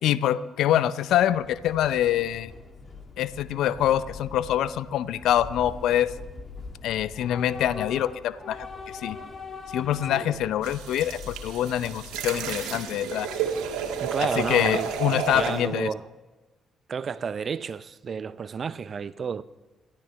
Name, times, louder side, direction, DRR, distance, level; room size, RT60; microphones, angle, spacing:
voice 1, 0.0-2.5 3.2-6.1 6.8-8.7 9.0-9.2 9.7-13.3 14.4-15.9, left 11 dB, 70° left, 0.6 m, -25 dB
Train / Subway metro underground, 1.1-15.8, left 4 dB, 40° left, 2.4 m, -43 dB
voice 2, 10.1-10.6 14.0-16.1 16.9-19.4, right 6 dB, 50° right, 0.6 m, -32 dB
sound 1, 10.6-15.6, right 7 dB, 75° right, 1.9 m, -31 dB
28.5 x 13.0 x 3.4 m
hypercardioid pair, 45°, 0 cm